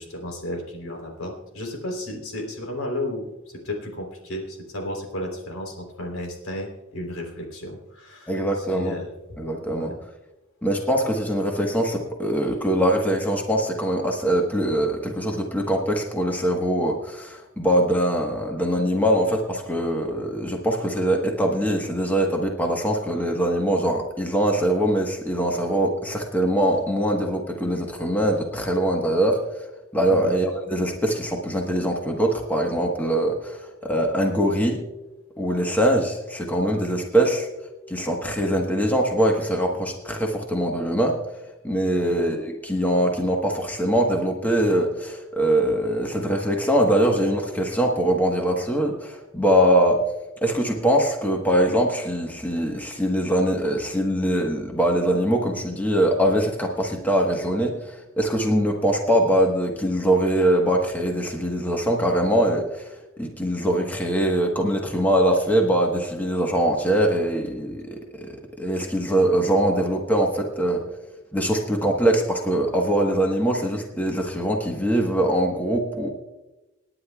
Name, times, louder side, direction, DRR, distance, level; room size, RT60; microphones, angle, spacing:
voice 1, 0.0-9.1 9.7-9.9 30.1-30.3 41.9-42.2, left 1 dB, 80° left, 1 dB, 3.5 m, -33 dB
voice 2, 8.3-9.0 9.4-9.9 10.6-29.4 29.9-34.8 35.4-37.5 37.9-41.2 41.6-50.0 50.4-68.3 68.6-70.8 71.3-76.1, right 1 dB, 10° left, 1 dB, 1.2 m, -22 dB
27.5 x 9.9 x 2.3 m, 1.0 s
head